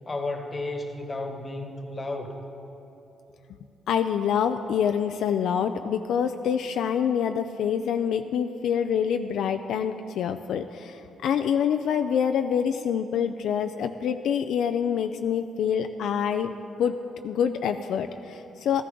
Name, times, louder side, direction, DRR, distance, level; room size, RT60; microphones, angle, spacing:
voice 1, 0.1-2.4, left 2 dB, 25° left, 5 dB, 1.2 m, -33 dB
voice 2, 3.9-16.9 17.2-18.8, left 8 dB, 75° left, 7 dB, 0.4 m, -26 dB
13.5 x 13.5 x 3.8 m, 2.9 s
cardioid pair, 90°, 0 cm